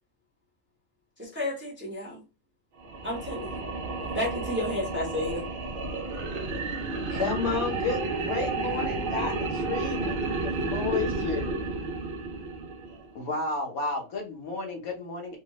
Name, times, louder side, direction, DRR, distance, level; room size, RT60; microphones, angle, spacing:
voice 1, 1.2-2.2 3.0-3.6 4.1-5.4, left 1 dB, 10° right, -2 dB, 0.7 m, -31 dB
sound 1, 2.8-13.1, right 3 dB, 60° right, 0.5 m, -31 dB
voice 2, 7.1-11.7, left 5 dB, 55° left, 1 dB, 1.1 m, -32 dB
voice 3, 13.1-15.4, left 1 dB, 75° left, 1 dB, 1.3 m, -32 dB
3.1 x 2.2 x 2.9 m, 0.30 s
omnidirectional pair, 1.5 m